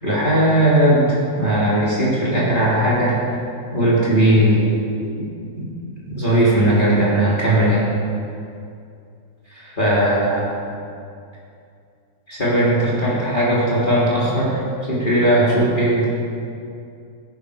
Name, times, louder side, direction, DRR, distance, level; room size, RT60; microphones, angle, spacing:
voice 1, 0.0-3.2 3.7-4.7 5.6-5.7 6.1-7.9 9.5-10.5 12.3-14.6 14.9-16.1, right 1 dB, 30° left, -8 dB, 3.4 m, -18 dB
16.0 x 12.0 x 5.0 m, 2.5 s
omnidirectional pair, 1.8 m